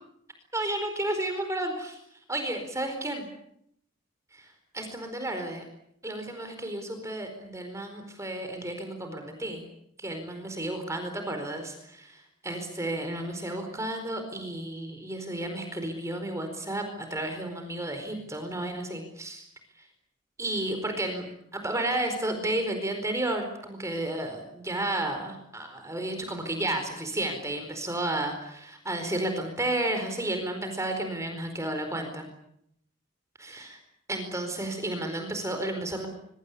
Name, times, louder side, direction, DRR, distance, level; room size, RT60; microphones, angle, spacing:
voice 1, 0.5-2.0 2.3-3.2 4.3-4.5 4.7-5.6 6.0-9.6 10.0-19.5 20.4-21.2 21.5-32.3 33.4-33.8 34.1-36.1, right 1 dB, 15° right, 5 dB, 4.5 m, -32 dB
25.0 x 24.0 x 8.5 m, 0.74 s
head